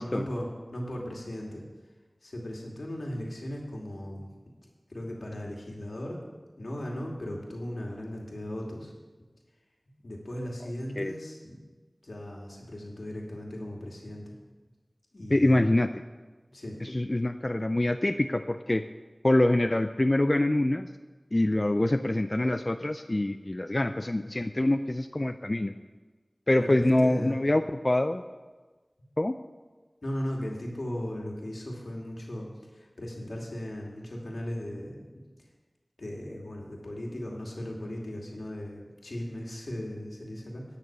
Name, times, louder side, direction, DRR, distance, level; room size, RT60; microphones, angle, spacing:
voice 1, 0.0-1.6 2.2-4.3 4.9-6.2 6.6-8.9 10.0-11.6 12.0-14.3 15.1-15.6 16.5-16.8 26.5-27.3 30.0-35.0 36.0-40.6, equal, 90° left, -1 dB, 2.6 m, -37 dB
voice 2, 15.3-15.9 16.8-18.8 19.2-20.9 21.3-25.7 26.5-28.2 29.2-29.4, left 1 dB, 40° left, 8 dB, 0.4 m, -25 dB
10.5 x 6.7 x 8.7 m, 1.3 s
wide cardioid pair, 50°, 0 cm